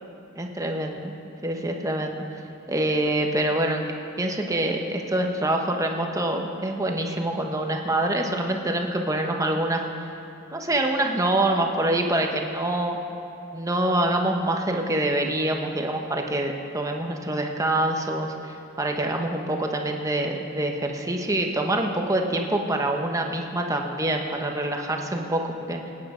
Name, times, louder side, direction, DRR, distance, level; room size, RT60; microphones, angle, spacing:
voice 1, 0.4-1.1 1.4-2.2 2.7-3.8 4.2-9.9 10.5-13.0 13.5-25.8, right 1 dB, 15° right, 2 dB, 1.1 m, -25 dB
24.0 x 9.7 x 5.1 m, 2.8 s
head